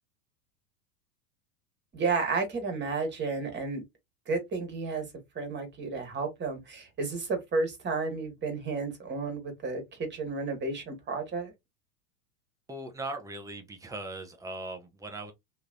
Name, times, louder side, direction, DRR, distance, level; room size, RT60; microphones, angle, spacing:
voice 1, 1.9-3.8 4.3-5.0 5.3-11.5, right 4 dB, 25° right, 1.4 m, -32 dB
voice 2, 12.7-15.3, right 2 dB, 10° right, 0.5 m, -39 dB
3.0 x 2.7 x 2.5 m
hypercardioid pair, 100°, 46 cm